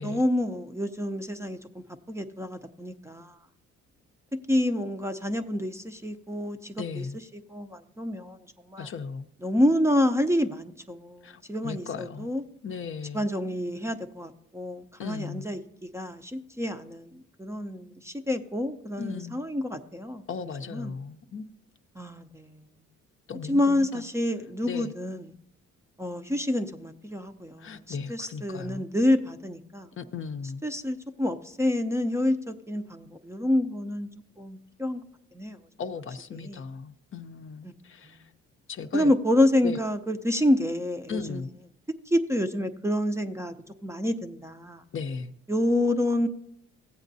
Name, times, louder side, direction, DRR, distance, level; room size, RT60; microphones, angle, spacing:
voice 1, 0.0-3.4 4.5-7.1 7.3-8.9 9.4-12.4 13.1-20.2 20.7-20.9 22.0-22.7 23.5-25.3 26.0-29.9 30.6-34.1 34.4-35.0 35.3-35.6 36.4-36.6 38.0-38.2 38.9-41.4 42.1-43.5 43.8-44.8 45.5-46.3, left 1 dB, 10° right, 0.5 m, -28 dB
voice 2, 6.8-7.2 8.8-9.3 11.2-12.3 12.6-13.3 15.0-15.5 19.0-19.4 20.3-21.5 23.3-24.0 24.6-24.9 27.6-28.9 29.9-30.6 35.8-38.3 38.7-39.1 39.6-39.8 41.1-41.5 44.9-45.3, left 5 dB, 45° left, 0.6 m, -37 dB
15.0 x 8.1 x 2.7 m
cardioid pair, 90°, 30 cm